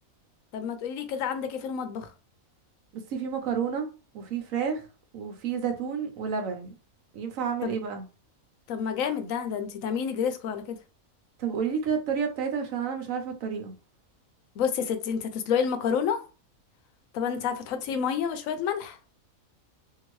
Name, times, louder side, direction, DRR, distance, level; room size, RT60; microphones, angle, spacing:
voice 1, 0.5-2.1 7.6-7.7 8.7-10.8 14.6-16.2 17.1-19.0, left 7 dB, 75° left, 1.0 m, -29 dB
voice 2, 2.9-4.8 5.1-6.7 7.1-8.0 11.4-13.7, right 6 dB, 75° right, 1.1 m, -30 dB
2.8 x 2.6 x 3.0 m
omnidirectional pair, 1.4 m